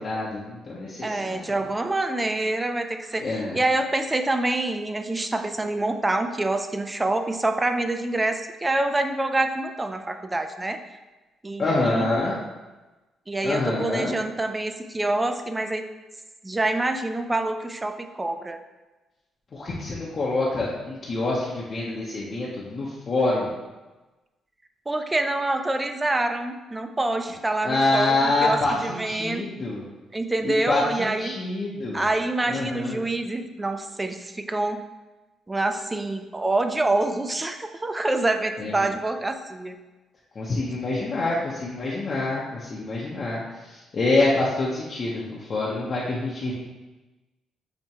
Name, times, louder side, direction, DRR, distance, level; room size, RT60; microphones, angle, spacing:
voice 1, 0.0-1.4 3.2-3.6 11.6-12.4 13.4-14.1 19.5-23.5 27.6-29.8 30.4-32.0 32.5-33.0 38.6-38.8 40.4-43.4 43.7-46.5, left 2 dB, 45° left, -6 dB, 0.7 m, -26 dB
voice 2, 1.0-10.8 11.4-12.1 13.3-15.8 16.4-18.6 24.9-29.5 30.1-31.4 31.9-34.8 35.5-39.8, right 2 dB, 15° right, 7 dB, 0.3 m, -26 dB
5.8 x 2.1 x 2.8 m, 1.1 s
cardioid pair, 90°, 0 cm